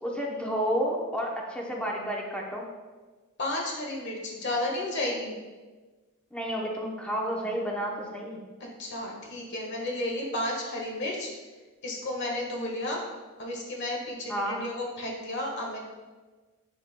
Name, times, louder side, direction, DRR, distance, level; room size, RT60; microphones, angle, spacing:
voice 1, 0.0-2.6 6.3-8.4 14.3-14.6, equal, 5° left, -2 dB, 0.7 m, -31 dB
voice 2, 3.4-5.3 8.8-11.3 11.8-13.0 13.4-15.8, left 1 dB, 55° left, -1 dB, 1.5 m, -32 dB
11.0 x 4.4 x 2.2 m, 1.3 s
head